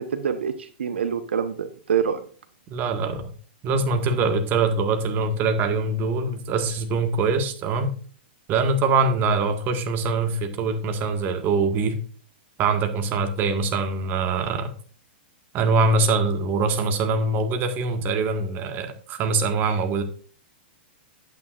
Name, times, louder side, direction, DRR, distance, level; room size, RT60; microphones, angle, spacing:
voice 1, 0.0-2.2, right 7 dB, 80° right, 10 dB, 1.0 m, -26 dB
voice 2, 2.7-3.3 3.6-7.9 8.5-12.0 12.6-14.7 15.5-20.0, right 3 dB, 35° right, 6 dB, 1.7 m, -23 dB
10.5 x 9.1 x 2.5 m, 0.42 s
hypercardioid pair, 115°, 6 cm